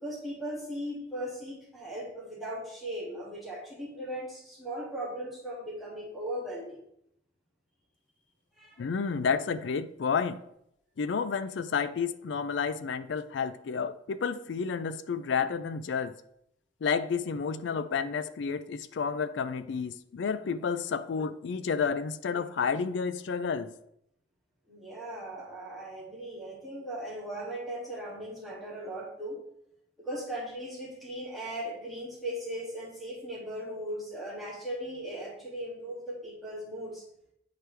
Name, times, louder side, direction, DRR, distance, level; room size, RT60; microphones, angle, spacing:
voice 1, 0.0-6.8 8.5-8.8 24.7-29.4 30.0-37.0, right 1 dB, ahead, -8 dB, 2.3 m, -38 dB
voice 2, 8.8-10.4 11.0-16.1 16.8-23.7, left 6 dB, 75° left, 12 dB, 0.4 m, -30 dB
8.5 x 4.6 x 3.4 m, 0.75 s
head